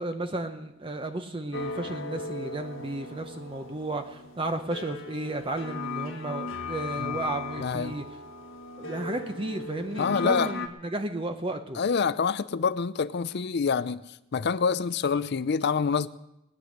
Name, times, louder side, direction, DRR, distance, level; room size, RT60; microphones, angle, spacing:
voice 1, 0.0-8.0 8.8-11.8, right 2 dB, 25° right, 0.8 m, -33 dB
sound 1, 1.5-10.7, left 3 dB, 75° left, 1.6 m, -37 dB
voice 2, 7.6-7.9 10.0-10.5 11.8-14.0 14.3-16.1, left 5 dB, 55° left, 0.5 m, -26 dB
19.5 x 9.8 x 6.4 m
head